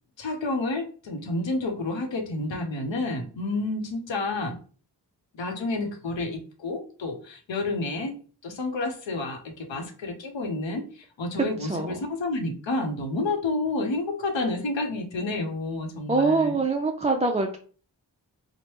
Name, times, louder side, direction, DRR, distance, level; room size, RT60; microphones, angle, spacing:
voice 1, 0.2-4.6 5.3-8.1 8.4-16.6, left 2 dB, 85° left, 5 dB, 0.7 m, -30 dB
voice 2, 11.6-11.9 16.1-17.6, right 3 dB, 15° right, 2 dB, 0.3 m, -24 dB
3.0 x 2.1 x 3.1 m, 0.40 s
cardioid pair, 40°, 44 cm